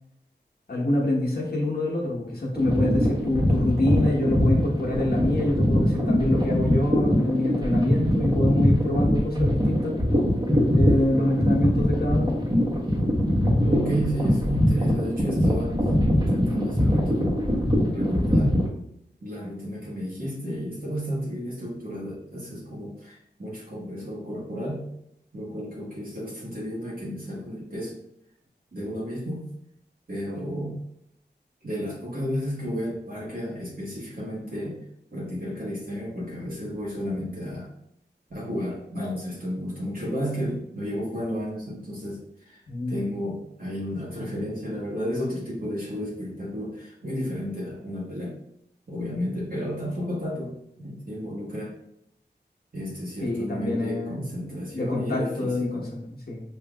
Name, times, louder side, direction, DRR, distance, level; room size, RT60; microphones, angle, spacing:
voice 1, 0.7-10.0 10.7-12.4 42.7-43.1 53.2-54.3 54.7-56.4, left 1 dB, 60° left, -3 dB, 1.1 m, -26 dB
sound 1, 2.6-18.7, equal, 25° right, 1.2 m, -22 dB
voice 2, 13.6-15.8 16.1-17.3 17.9-18.5 19.2-24.8 25.3-27.9 28.7-29.5 30.1-30.7 31.6-34.8 35.1-37.7 38.3-42.6 42.9-48.3 48.9-50.5 50.8-51.7 52.7-55.9, equal, 55° right, -6 dB, 1.4 m, -32 dB
5.4 x 2.8 x 2.3 m, 0.78 s
cardioid pair, 50°, 18 cm